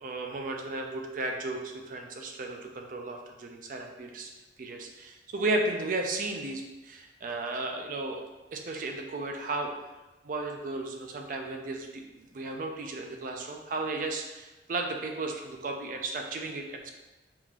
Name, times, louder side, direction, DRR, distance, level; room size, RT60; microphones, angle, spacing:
voice 1, 0.0-4.3 4.6-8.2 8.5-9.7 10.2-16.9, right 2 dB, 45° right, 3 dB, 0.4 m, -34 dB
3.6 x 2.9 x 2.4 m, 1.1 s
head